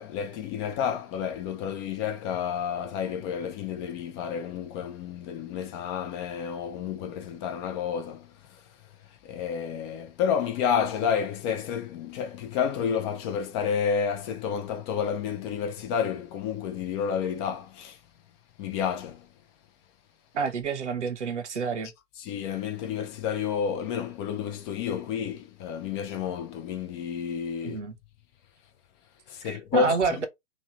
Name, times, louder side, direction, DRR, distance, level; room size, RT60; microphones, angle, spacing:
voice 1, 0.0-8.3 9.2-18.0 18.6-19.3 22.2-27.8 29.3-30.3, left 7 dB, 25° left, 0.5 m, -30 dB
voice 2, 20.3-21.9 27.6-27.9 29.4-30.3, right 5 dB, 75° right, 1.0 m, -28 dB
3.2 x 2.7 x 3.9 m
figure-of-eight pair, 115°, 36 cm